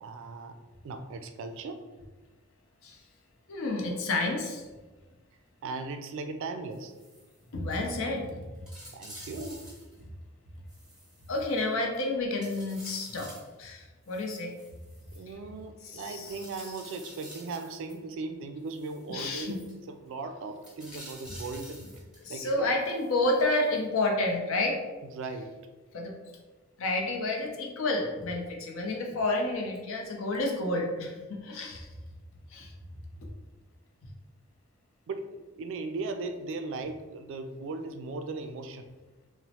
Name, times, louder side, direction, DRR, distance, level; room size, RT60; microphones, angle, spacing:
voice 1, 0.0-1.8 5.6-7.0 8.9-9.7 15.1-21.9 22.3-22.7 25.0-25.6 35.1-38.9, right 3 dB, 65° right, 7 dB, 0.3 m, -38 dB
voice 2, 3.5-4.6 7.5-8.6 11.3-13.3 13.6-14.5 15.9-16.3 19.1-19.6 22.2-24.8 25.9-26.1 26.8-31.9 32.5-32.7, left 2 dB, 75° left, 1 dB, 0.6 m, -30 dB
sound 1, 6.7-7.4 7.7-7.8 8.2-8.3 8.7-10.0 10.7-12.0 12.4-13.5 14.0-15.3 16.2-18.0 18.7-19.7 20.6-22.3 22.8-23.8 24.3-24.4, equal, 5° right, 0.8 m, -50 dB
3.0 x 2.0 x 2.8 m, 1.2 s
head